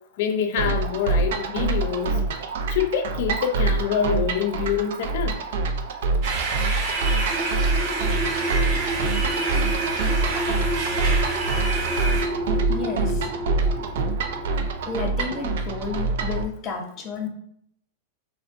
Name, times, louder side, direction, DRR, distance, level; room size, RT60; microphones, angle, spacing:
voice 1, 0.2-2.2 2.7-5.4, left 8 dB, 60° left, 6 dB, 0.4 m, -25 dB
sound 1, 0.6-16.4, right 3 dB, 70° right, 0.4 m, -25 dB
sound 2, 6.2-12.2, right 3 dB, 50° right, 0.8 m, -28 dB
sound 3, 6.9-15.2, right 1 dB, 5° right, 0.5 m, -31 dB
voice 2, 12.7-13.3 14.8-17.3, left 4 dB, 35° left, 3 dB, 0.7 m, -31 dB
2.4 x 2.1 x 3.6 m, 0.69 s
hypercardioid pair, 120°, 0 cm